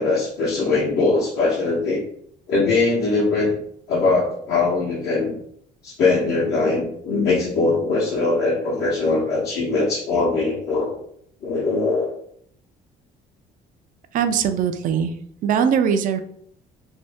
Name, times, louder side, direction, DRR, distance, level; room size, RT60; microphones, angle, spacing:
voice 1, 0.0-2.0 2.5-3.5 3.9-5.3 5.8-11.0 11.4-12.1, left 3 dB, 75° left, -6 dB, 0.9 m, -21 dB
voice 2, 14.1-15.1 15.4-16.2, right 7 dB, 55° right, 8 dB, 0.4 m, -20 dB
2.7 x 2.6 x 3.3 m, 0.66 s
cardioid pair, 110°, 17 cm